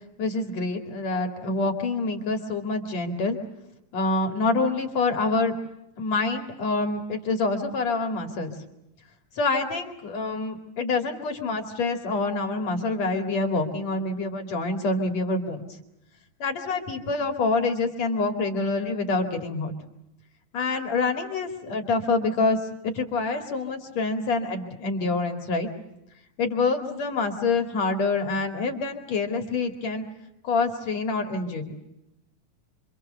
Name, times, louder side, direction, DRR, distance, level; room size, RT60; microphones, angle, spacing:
voice 1, 0.2-3.4 3.9-5.5 6.0-8.5 9.4-15.7 16.4-19.7 20.5-22.6 22.8-25.7 26.4-30.0 30.4-31.8, left 3 dB, 55° left, 4 dB, 3.3 m, -26 dB
27.0 x 25.5 x 6.8 m, 0.89 s
omnidirectional pair, 3.8 m